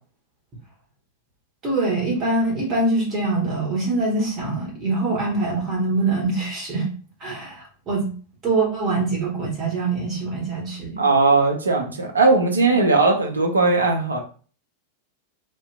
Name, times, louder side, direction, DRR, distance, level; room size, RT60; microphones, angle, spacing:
voice 1, 1.6-6.9 7.2-8.1 8.4-11.0, right 3 dB, 25° right, -4 dB, 1.2 m, -24 dB
voice 2, 11.0-14.2, right 3 dB, 75° right, 3 dB, 0.5 m, -18 dB
2.7 x 2.1 x 2.3 m, 0.40 s
figure-of-eight pair, 90°, 0 cm